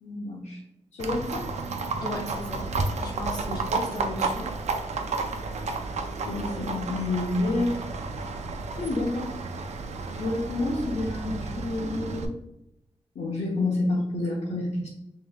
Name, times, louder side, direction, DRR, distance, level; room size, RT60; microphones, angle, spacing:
voice 1, 0.0-0.6 1.0-1.5 6.2-7.9 8.8-9.3 10.1-12.3 13.1-14.9, left 2 dB, 90° left, -5 dB, 0.9 m, -29 dB
Livestock farm animals working animals, 1.0-12.3, right 3 dB, 85° right, 0.5 m, -32 dB
voice 2, 2.0-2.7 3.0-4.5, left 2 dB, 35° left, 0 dB, 0.9 m, -35 dB
5.7 x 3.0 x 2.3 m, 0.85 s
wide cardioid pair, 100°, 11 cm